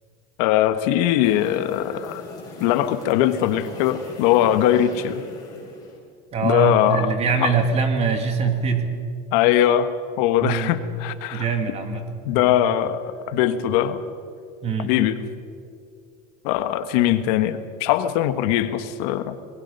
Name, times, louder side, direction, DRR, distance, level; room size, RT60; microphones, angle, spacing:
voice 1, 0.4-2.2 2.6-5.2 6.4-7.1 7.4-7.5 9.3-9.9 10.2-11.4 12.3-14.0 14.8-15.2 16.4-19.4, left 11 dB, 70° left, 11 dB, 1.4 m, -21 dB
sound 1, 1.2-6.0, left 2 dB, 15° left, 6.3 m, -40 dB
voice 2, 6.3-8.9 10.4-10.7 11.3-12.0 12.3-12.5 14.6-14.9, right 5 dB, 30° right, 6 dB, 2.4 m, -23 dB
26.0 x 20.5 x 5.5 m, 2.3 s
cardioid pair, 150°, 21 cm